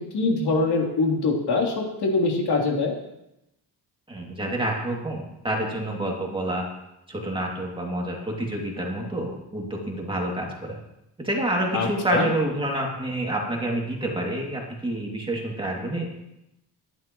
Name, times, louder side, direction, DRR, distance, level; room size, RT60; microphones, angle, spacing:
voice 1, 0.1-2.9 11.7-12.3, left 3 dB, 70° left, -1 dB, 3.4 m, -23 dB
voice 2, 4.1-6.7 7.1-10.8 11.2-16.1, right 1 dB, 15° right, -2 dB, 2.5 m, -28 dB
22.5 x 11.0 x 3.1 m, 0.87 s
cardioid pair, 155°, 40 cm